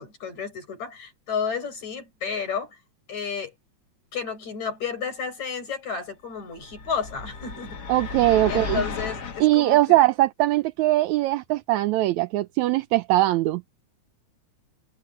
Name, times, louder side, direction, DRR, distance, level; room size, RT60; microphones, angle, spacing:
voice 1, 0.0-2.8 3.1-3.5 4.1-7.8 8.5-10.0, left 6 dB, 70° left, 9.5 m, -32 dB
sound 1, 6.6-9.5, left 5 dB, 45° left, 1.6 m, -34 dB
voice 2, 7.9-8.8 9.4-13.6, right 16 dB, 80° right, 2.0 m, -21 dB
omnidirectional pair, 3.3 m